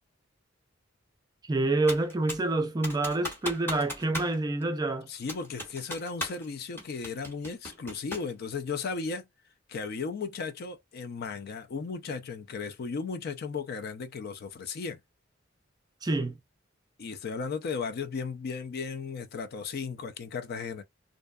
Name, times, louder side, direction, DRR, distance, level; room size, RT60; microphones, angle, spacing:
voice 1, 1.4-5.1 16.0-16.4, right 2 dB, 20° right, 0.3 m, -27 dB
Computer keyboard, 1.9-2.5 2.8-4.4 4.6-4.7 5.3-6.5 6.8-8.3, equal, 10° left, 1.0 m, -37 dB
voice 2, 5.1-9.2 9.7-15.0 17.0-20.8, left 5 dB, 50° left, 0.4 m, -35 dB
2.6 x 2.2 x 2.3 m
head